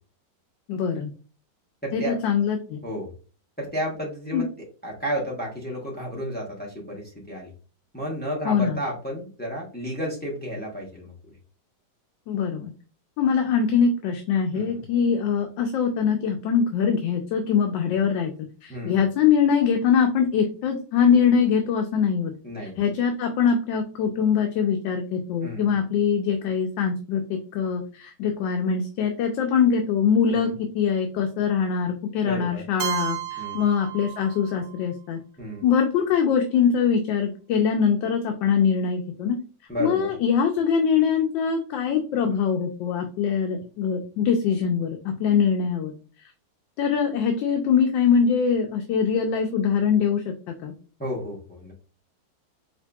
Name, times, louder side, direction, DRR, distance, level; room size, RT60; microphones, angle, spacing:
voice 1, 0.7-1.1 1.9-2.8 4.3-4.4 8.4-8.8 12.3-12.7 13.2-18.3 18.6-22.3 22.6-35.2 35.6-39.4 39.8-45.9 46.2-46.3 46.8-50.3 50.6-50.7, left 7 dB, 80° left, 3 dB, 1.3 m, -23 dB
voice 2, 1.8-2.3 2.8-3.1 3.6-4.5 4.8-7.5 7.9-11.1 14.5-14.8 18.7-19.0 22.4-22.8 25.4-25.8 30.3-30.5 32.2-32.6 33.4-33.6 35.4-35.6 39.7-40.1 51.0-51.7, equal, 15° left, -3 dB, 0.4 m, -32 dB
Keyboard (musical), 32.8-34.7, right 12 dB, 75° right, 0.9 m, -32 dB
5.3 x 2.5 x 2.2 m, 0.37 s
omnidirectional pair, 2.0 m